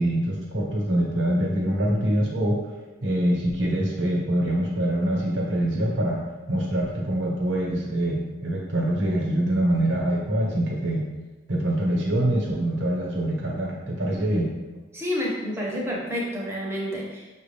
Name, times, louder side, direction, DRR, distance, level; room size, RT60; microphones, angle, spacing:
voice 1, 0.0-2.6 3.0-6.2 6.5-11.0 11.5-14.5, right 1 dB, 85° right, -2 dB, 1.2 m, -24 dB
voice 2, 14.9-17.3, equal, 15° right, -4 dB, 0.9 m, -29 dB
6.1 x 2.5 x 3.3 m, 1.2 s
head